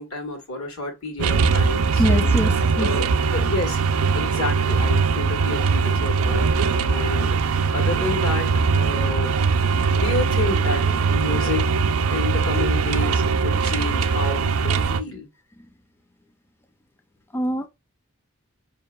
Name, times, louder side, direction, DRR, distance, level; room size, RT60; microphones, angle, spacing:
voice 1, 0.0-2.4 2.8-3.8 4.1-7.4 7.7-9.3 9.9-10.9 11.1-11.7 12.1-15.3, left 3 dB, 80° left, 1.4 m, -30 dB
sound 1, 1.2-15.0, right 5 dB, 85° right, 0.4 m, -21 dB
voice 2, 2.0-2.9 17.3-17.7, equal, 10° left, 0.3 m, -24 dB
5.1 x 2.8 x 2.3 m
head